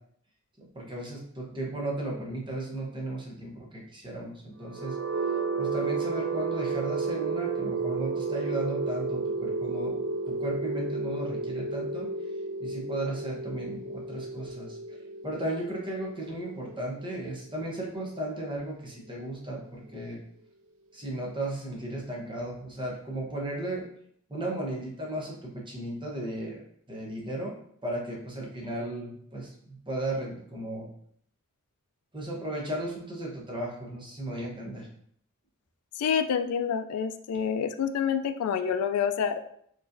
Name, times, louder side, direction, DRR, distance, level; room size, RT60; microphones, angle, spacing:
voice 1, 0.6-5.0 5.6-10.0 10.3-12.1 12.6-14.8 15.2-20.2 20.9-23.8 24.3-26.6 26.9-27.5 27.8-30.9 32.1-34.9, right 1 dB, 20° right, -2 dB, 0.9 m, -35 dB
sound 1, 4.6-18.5, right 3 dB, 60° right, 0.5 m, -32 dB
voice 2, 35.9-39.4, left 7 dB, 75° left, 9 dB, 0.3 m, -27 dB
4.7 x 3.1 x 2.6 m, 0.66 s
head